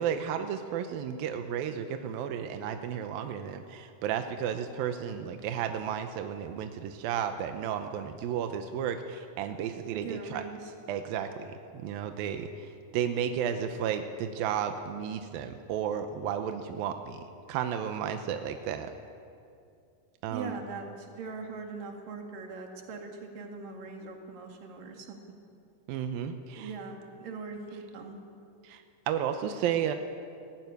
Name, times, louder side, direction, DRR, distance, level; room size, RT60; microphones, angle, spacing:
voice 1, 0.0-10.4 10.9-18.9 20.2-20.6 25.9-26.7 28.6-29.9, right 8 dB, 80° right, 7 dB, 2.2 m, -33 dB
voice 2, 9.9-10.7 20.3-25.2 26.5-28.2, right 4 dB, 55° right, 2 dB, 3.5 m, -41 dB
18.5 x 15.0 x 9.6 m, 2.4 s
omnidirectional pair, 5.1 m